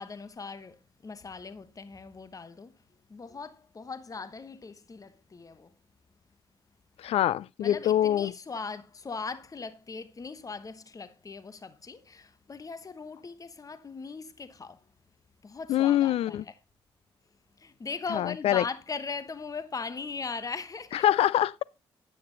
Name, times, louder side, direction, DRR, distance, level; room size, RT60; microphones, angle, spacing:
voice 1, 0.0-2.7 3.1-5.7 7.6-14.8 15.4-16.5 17.6-21.0, left 4 dB, 35° left, 1.1 m, -39 dB
voice 2, 7.0-8.3 15.7-16.4 18.1-18.6 21.0-21.6, left 12 dB, 70° left, 0.5 m, -24 dB
9.8 x 8.7 x 3.9 m
supercardioid pair, 65°, 10 cm